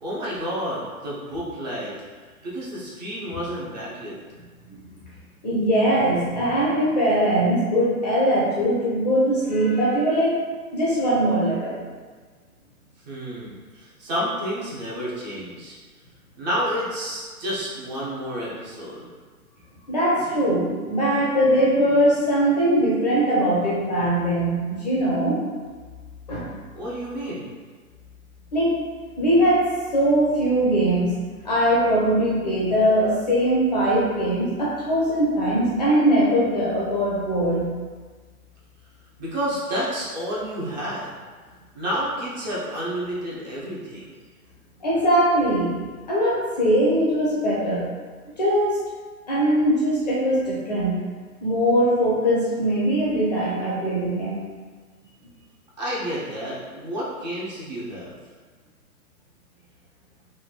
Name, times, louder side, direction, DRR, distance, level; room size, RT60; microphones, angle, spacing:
voice 1, 0.0-1.9 2.4-4.1 13.1-15.8 16.4-19.0 26.7-27.5 39.2-41.1 41.7-44.1 55.8-58.1, equal, 30° right, -7 dB, 0.7 m, -30 dB
voice 2, 5.4-10.3 10.7-11.8 19.9-25.4 26.3-26.5 28.5-28.8 29.2-29.6 29.9-31.1 31.4-37.7 44.8-45.7 46.1-47.9 48.4-48.8 49.3-50.9 51.4-54.4, right 1 dB, 30° left, -7 dB, 0.5 m, -21 dB
3.2 x 2.6 x 2.2 m, 1.4 s
figure-of-eight pair, 120°, 44 cm